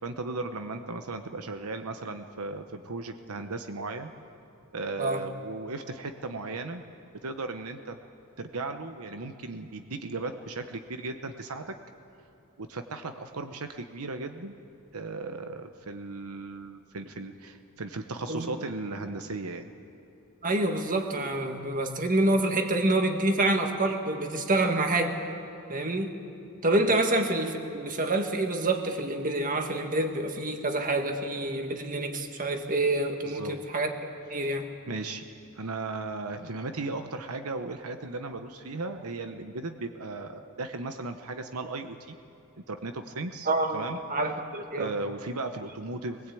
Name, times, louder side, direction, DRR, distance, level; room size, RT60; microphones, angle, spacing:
voice 1, 0.0-4.1 4.7-6.8 7.2-7.9 8.4-11.7 12.6-14.5 14.9-19.7 26.9-27.0 33.2-33.5 34.4-34.6 34.9-35.2 35.6-42.2 42.7-44.0 44.7-46.2, right 3 dB, 85° right, 7 dB, 1.0 m, -36 dB
voice 2, 20.4-25.2 25.7-26.1 26.6-33.9 34.3-34.7 43.4-44.9, right 2 dB, 40° right, 5 dB, 1.8 m, -27 dB
22.0 x 20.0 x 8.5 m, 2.7 s
head